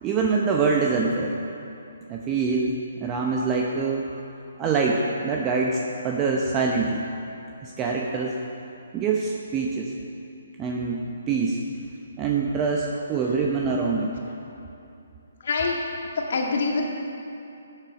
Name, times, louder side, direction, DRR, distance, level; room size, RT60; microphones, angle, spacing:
voice 1, 0.0-1.3 2.1-4.1 4.6-7.0 7.6-8.3 8.9-9.9 10.6-11.6 12.2-14.1, right 4 dB, 20° right, -1 dB, 0.9 m, -25 dB
voice 2, 15.4-15.8 16.1-16.9, left 3 dB, 60° left, 0 dB, 2.0 m, -25 dB
13.5 x 7.7 x 4.9 m, 2.7 s
hypercardioid pair, 145°, 0 cm